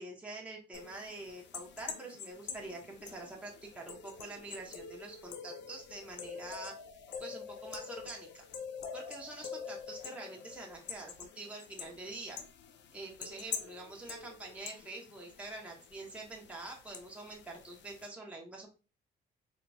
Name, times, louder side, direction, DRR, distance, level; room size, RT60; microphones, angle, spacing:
voice 1, 0.0-6.7 7.2-8.4 8.9-12.4 12.9-18.7, right 2 dB, 5° right, -2 dB, 0.9 m, -46 dB
sound 1, 0.7-18.1, left 6 dB, 65° left, 0.6 m, -46 dB
3.9 x 2.9 x 2.3 m, 0.32 s
cardioid pair, 90°, 20 cm